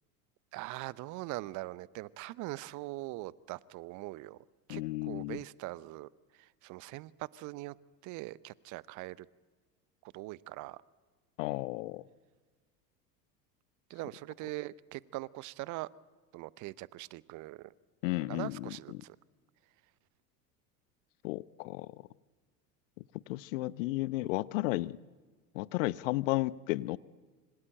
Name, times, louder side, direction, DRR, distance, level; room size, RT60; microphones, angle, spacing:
voice 1, 0.5-4.4 4.7-6.1 6.4-7.7 8.0-9.3 10.1-10.8 13.9-15.9 16.3-17.7 18.3-19.2, right 19 dB, 40° right, 22 dB, 0.8 m, -42 dB
voice 2, 4.7-5.4 11.4-12.0 18.0-19.0 21.2-21.9 23.3-25.0 25.5-27.0, left 19 dB, 50° left, 20 dB, 0.9 m, -33 dB
26.0 x 25.0 x 8.8 m, 1.4 s
figure-of-eight pair, 80°, 48 cm